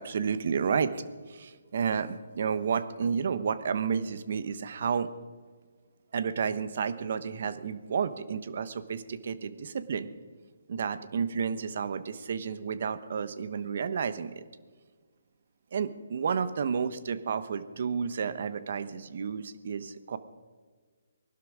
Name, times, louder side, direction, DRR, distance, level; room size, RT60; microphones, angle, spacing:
voice 1, 0.0-5.1 6.1-10.1 10.7-14.4 15.7-20.2, right 6 dB, 55° right, 14 dB, 1.0 m, -31 dB
20.0 x 12.0 x 5.0 m, 1.5 s
hypercardioid pair, 155°, 0 cm